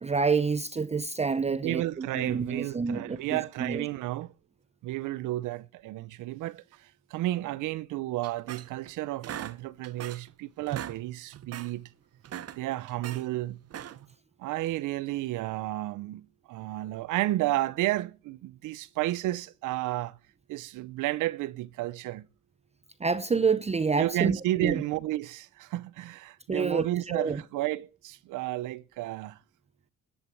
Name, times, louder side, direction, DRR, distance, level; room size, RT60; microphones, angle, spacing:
voice 1, 0.0-3.8 23.0-24.8 26.5-27.4, right 5 dB, 20° right, 0.7 m, -28 dB
voice 2, 1.5-4.3 4.8-11.9 12.6-13.6 14.4-20.2 20.5-22.3 24.0-29.4, right 16 dB, 90° right, 0.7 m, -32 dB
sound 1, 8.2-8.9 9.2-10.3 10.6-11.0 11.3-11.7 12.1-13.2 13.6-14.1, right 11 dB, 55° right, 0.8 m, -39 dB
11.5 x 9.9 x 7.5 m
cardioid pair, 90°, 30 cm